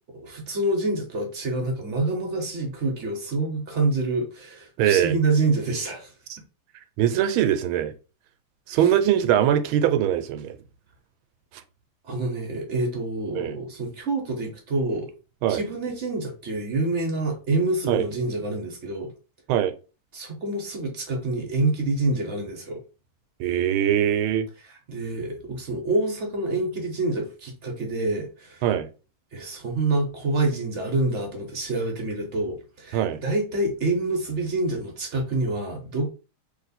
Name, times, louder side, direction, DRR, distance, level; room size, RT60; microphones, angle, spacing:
voice 1, 0.1-6.1 8.7-8.8 12.0-15.1 15.5-19.1 20.1-22.8 24.9-28.6 29.3-36.1, right 2 dB, 50° right, 0.8 m, -27 dB
voice 2, 4.8-5.1 7.0-7.9 8.7-10.6 13.3-13.6 15.4-15.6 17.9-18.0 19.5-19.7 23.4-24.5 28.6-28.9 32.9-33.2, right 10 dB, 80° right, 1.4 m, -22 dB
3.1 x 3.0 x 4.1 m
omnidirectional pair, 2.3 m